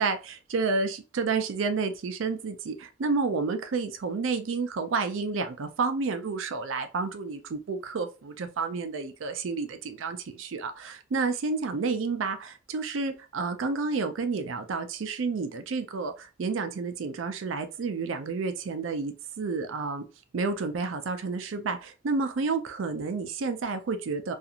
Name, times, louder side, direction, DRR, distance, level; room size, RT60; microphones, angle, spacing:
voice 1, 0.0-20.0 20.3-24.3, right 4 dB, 90° right, 0.4 m, -30 dB
2.4 x 2.4 x 2.8 m
head